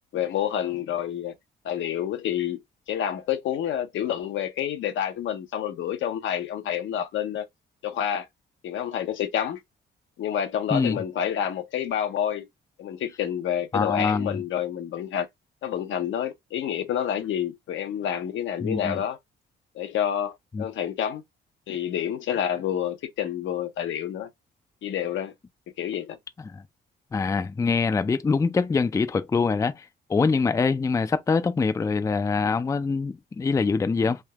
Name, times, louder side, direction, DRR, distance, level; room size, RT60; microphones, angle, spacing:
voice 1, 0.1-1.3 1.6-2.6 2.9-7.5 7.8-8.3 8.6-9.6 10.2-12.5 12.8-15.3 15.6-19.2 19.7-21.2 21.7-24.3 24.8-25.3 25.8-26.2, left 9 dB, 75° left, 0.7 m, -28 dB
voice 2, 10.7-11.0 13.7-14.4 18.6-19.0 20.5-20.6 26.5-26.6 27.1-29.8 30.1-34.2, left 4 dB, 15° left, 0.3 m, -24 dB
3.4 x 2.7 x 2.2 m
cardioid pair, 90°, 20 cm